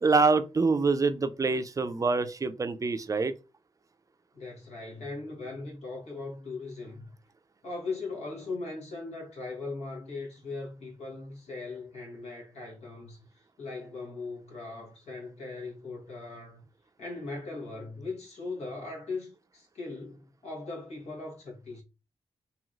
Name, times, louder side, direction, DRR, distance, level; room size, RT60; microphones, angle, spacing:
voice 1, 0.0-3.3, right 4 dB, 30° right, 0.4 m, -25 dB
voice 2, 4.3-7.1 7.6-16.6 17.0-21.8, left 3 dB, 85° left, 1.2 m, -39 dB
3.0 x 2.7 x 2.4 m
cardioid pair, 65°, 11 cm